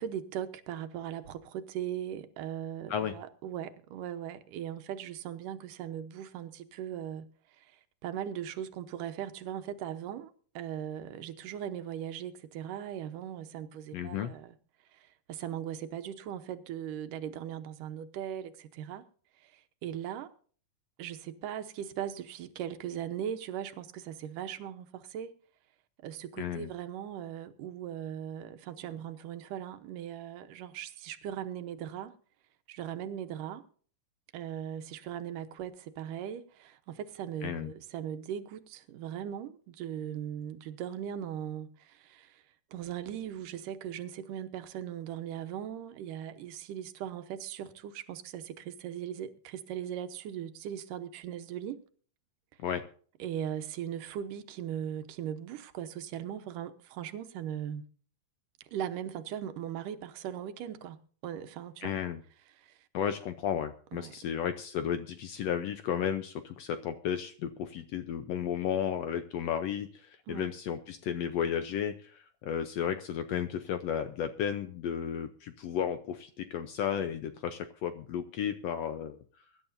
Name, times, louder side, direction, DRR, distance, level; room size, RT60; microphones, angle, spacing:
voice 1, 0.0-7.3 7.6-14.5 14.9-19.1 19.4-20.3 21.0-25.3 26.0-32.1 32.7-33.6 34.3-42.4 42.7-51.8 53.2-57.8 58.7-61.0 61.2-62.0 62.6-62.8 63.9-64.4 70.3-70.5, right 10 dB, 85° right, 2.6 m, -39 dB
voice 2, 13.9-14.3 26.4-26.7 37.4-37.7 52.6-52.8 61.8-62.2 62.9-79.2, left 9 dB, 75° left, 1.6 m, -33 dB
23.5 x 11.0 x 2.6 m
omnidirectional pair, 3.7 m